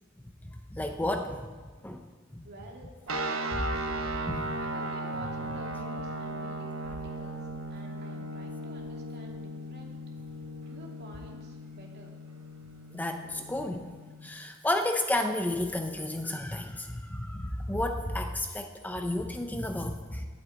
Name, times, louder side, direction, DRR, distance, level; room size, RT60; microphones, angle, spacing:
voice 1, 0.7-1.5 1.8-2.0 4.3-4.5 12.9-13.9 14.2-20.3, left 1 dB, 10° left, 5 dB, 0.6 m, -31 dB
voice 2, 2.4-4.1 4.6-7.4 7.7-10.0 10.7-12.1, right 1 dB, 55° right, -1 dB, 2.6 m, -49 dB
sound 1, 3.1-14.3, right 1 dB, 80° right, 1.1 m, -37 dB
12.0 x 8.6 x 7.8 m, 1.5 s
head